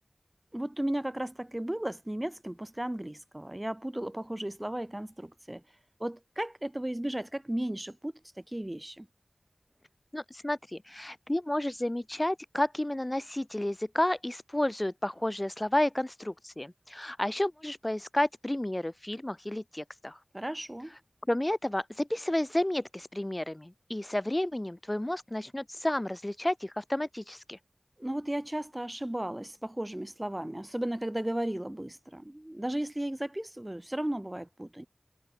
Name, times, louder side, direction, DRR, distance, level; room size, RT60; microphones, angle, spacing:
voice 1, 0.5-5.6 6.0-9.1 20.3-20.9 28.0-34.9, right 1 dB, 20° right, 0.9 m, -35 dB
voice 2, 10.1-20.2 21.3-27.6, left 1 dB, 25° left, 0.6 m, -31 dB
wide cardioid pair, 45°, 0 cm